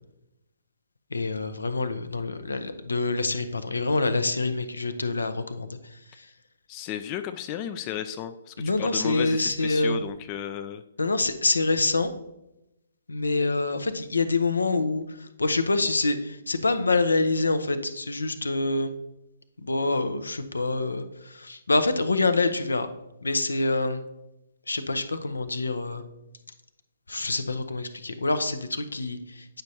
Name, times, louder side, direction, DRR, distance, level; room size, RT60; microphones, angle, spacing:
voice 1, 1.1-5.8 8.6-10.0 11.0-12.1 13.1-18.9 19.6-22.9 23.2-24.0 24.7-26.0 27.1-29.6, left 3 dB, 75° left, 11 dB, 0.6 m, -26 dB
voice 2, 6.7-10.8, left 10 dB, 30° left, 9 dB, 0.3 m, -34 dB
8.9 x 5.1 x 2.7 m, 0.90 s
figure-of-eight pair, 130°, 0 cm